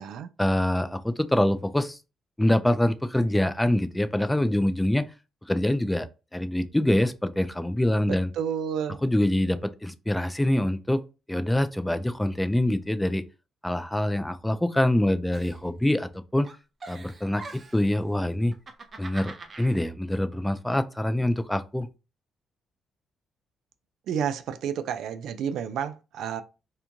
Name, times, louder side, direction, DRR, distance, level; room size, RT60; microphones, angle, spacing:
voice 1, 0.4-2.0 2.4-5.1 5.5-8.3 9.0-11.0 11.3-13.2 13.6-16.5 16.9-18.5 19.0-21.9, left 1 dB, 5° left, 0.3 m, -25 dB
voice 2, 8.4-9.0 24.1-26.4, right 8 dB, 75° right, 0.3 m, -30 dB
Giggle, 15.3-16.2 16.4-17.9 18.5-19.8, right 3 dB, 40° right, 0.6 m, -43 dB
2.9 x 2.2 x 2.5 m
cardioid pair, 90°, 0 cm